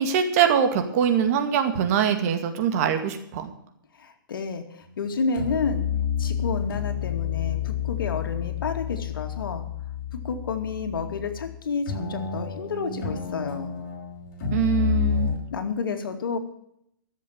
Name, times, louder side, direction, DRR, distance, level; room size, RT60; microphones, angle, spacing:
voice 1, 0.0-3.5 14.5-15.3, right 8 dB, 45° right, 7 dB, 2.2 m, -23 dB
voice 2, 3.9-5.9 6.2-9.6 10.1-13.7 15.5-16.4, left 5 dB, 80° left, 6 dB, 2.5 m, -30 dB
sound 1, 4.8-5.1 5.3-11.6 11.9-15.4, left 8 dB, 50° left, 5.1 m, -30 dB
14.0 x 7.5 x 8.8 m, 0.74 s
hypercardioid pair, 145°, 11 cm